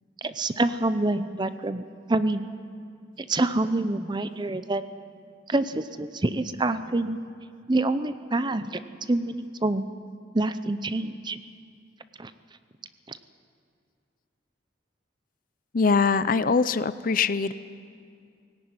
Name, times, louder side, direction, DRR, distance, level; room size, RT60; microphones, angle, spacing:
voice 1, 0.2-1.8 2.1-2.5 3.3-4.8 5.5-7.2 7.7-8.8 9.1-9.9 10.3-11.4 12.2-12.3 13.1-13.2, right 2 dB, 25° right, 12 dB, 0.6 m, -26 dB
voice 2, 15.7-17.5, left 5 dB, 45° left, 15 dB, 0.5 m, -22 dB
18.5 x 17.0 x 9.5 m, 2.3 s
head